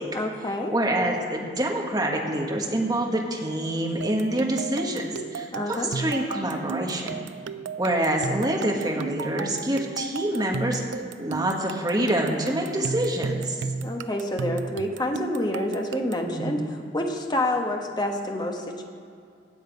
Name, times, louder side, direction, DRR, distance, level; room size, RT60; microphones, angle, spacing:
voice 1, 0.1-0.7 5.5-5.9 7.9-8.1 13.8-18.8, left 1 dB, 25° left, 2 dB, 1.1 m, -28 dB
voice 2, 0.7-7.2 7.8-10.8 11.2-13.6 16.3-16.6, right 1 dB, 20° right, 1 dB, 1.4 m, -26 dB
sound 1, 4.0-16.3, right 5 dB, 85° right, 0.4 m, -34 dB
16.5 x 8.0 x 5.2 m, 2.4 s
head